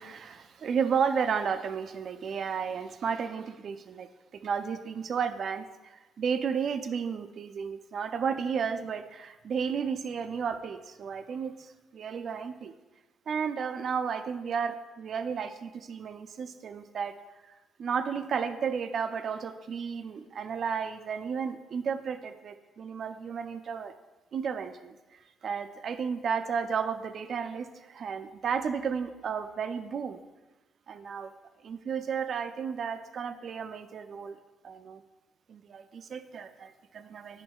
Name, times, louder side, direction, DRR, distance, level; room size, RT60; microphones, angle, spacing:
voice 1, 0.0-12.8 13.3-17.1 17.8-23.9 24.3-30.2 30.9-31.3 31.6-34.4 34.6-35.0 35.5-37.4, right 6 dB, 55° right, 9 dB, 0.4 m, -33 dB
8.8 x 5.9 x 2.3 m, 1.1 s
cardioid pair, 90°, 0 cm